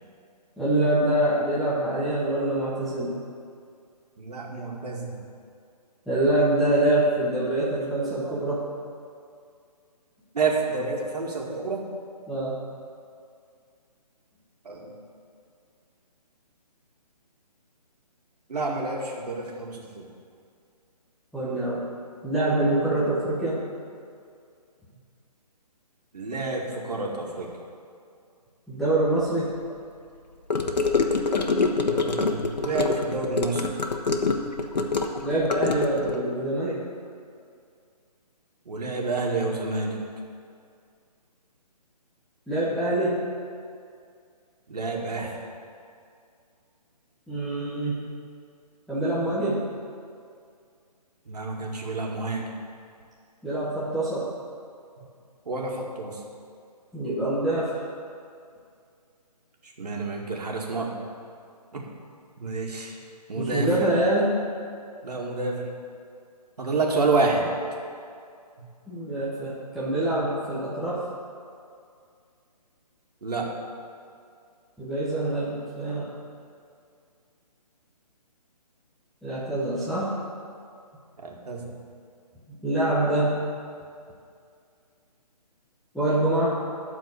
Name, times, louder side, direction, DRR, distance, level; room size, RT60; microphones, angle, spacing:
voice 1, 0.6-3.2 6.1-8.6 12.3-12.6 21.3-21.8 22.2-23.6 28.7-29.5 35.2-36.8 42.5-43.2 47.3-48.1 48.9-49.6 53.4-54.3 56.9-57.8 63.3-64.4 68.9-71.0 74.8-76.1 79.2-80.1 82.5-83.5 85.9-86.6, right 1 dB, ahead, -11 dB, 0.6 m, -25 dB
voice 2, 4.2-5.1 8.0-8.4 10.3-11.9 14.6-15.0 18.5-20.1 26.1-27.5 31.9-33.7 38.7-40.0 44.7-45.3 51.3-52.4 55.5-56.2 59.6-61.0 61.7-61.8 62.4-63.0 63.3-63.7 65.0-65.7 66.6-67.5 73.2-73.5 81.2-81.7, right 3 dB, 70° right, 0 dB, 2.2 m, -29 dB
Gurgling / Car passing by / Sink (filling or washing), 30.5-36.2, left 4 dB, 90° left, 1.2 m, -25 dB
12.5 x 4.6 x 8.4 m, 2.3 s
hypercardioid pair, 165°, 21 cm